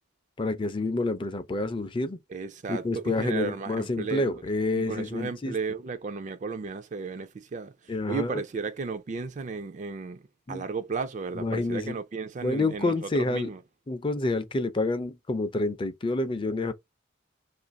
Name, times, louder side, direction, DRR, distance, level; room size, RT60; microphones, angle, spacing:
voice 1, 0.4-2.2 2.7-5.5 7.9-8.4 10.5-10.6 11.3-12.0 12.4-13.5 13.9-16.7, left 2 dB, 25° left, 0.4 m, -28 dB
voice 2, 2.3-4.4 4.8-13.6, right 4 dB, 40° right, 0.4 m, -34 dB
2.8 x 2.5 x 4.0 m
head